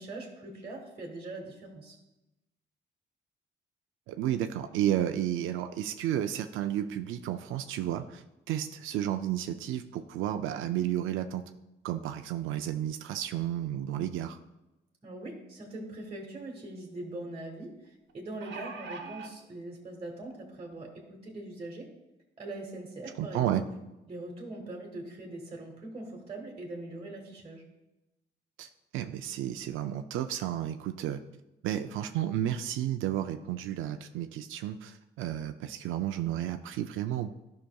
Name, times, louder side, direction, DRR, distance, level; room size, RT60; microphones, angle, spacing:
voice 1, 0.0-2.0 15.0-21.9 22.4-23.6 24.1-27.6, right 2 dB, 30° right, -1 dB, 1.5 m, -42 dB
voice 2, 4.1-11.4 11.8-14.4 23.2-23.6 28.6-31.2 31.6-37.3, right 11 dB, 85° right, 7 dB, 0.4 m, -32 dB
sound 1, 16.0-16.1 16.4-16.5 18.1-19.3 20.2-20.3 20.7-20.8, right 4 dB, 65° right, 1.0 m, -42 dB
11.5 x 5.8 x 2.3 m, 0.96 s
cardioid pair, 90°, 20 cm